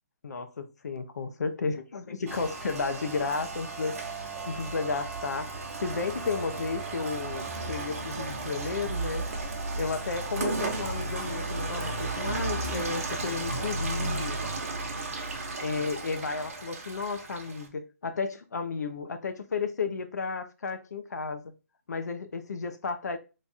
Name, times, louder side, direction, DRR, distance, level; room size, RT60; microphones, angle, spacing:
voice 1, 0.2-4.0 4.5-5.5 5.8-9.3 9.8-14.4 15.6-21.5 21.9-23.2, left 4 dB, 85° left, 0.7 m, -33 dB
Rain, 2.3-17.7, right 3 dB, 55° right, 0.9 m, -34 dB
3.2 x 2.4 x 4.1 m
hypercardioid pair, 180°, 9 cm